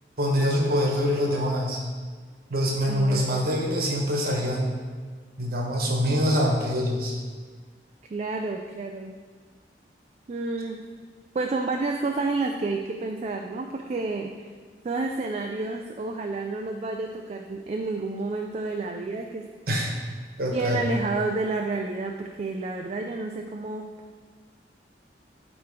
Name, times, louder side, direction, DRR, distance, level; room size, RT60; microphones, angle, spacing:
voice 1, 0.2-1.8 2.5-4.8 5.4-7.1 19.7-19.9 20.4-20.8, equal, 55° right, -1 dB, 1.2 m, -24 dB
voice 2, 2.9-3.4 8.1-9.1 10.3-10.9 11.3-14.5 14.8-19.5 20.5-23.9, right 3 dB, 35° right, 3 dB, 0.3 m, -30 dB
8.2 x 3.1 x 4.6 m, 1.5 s
head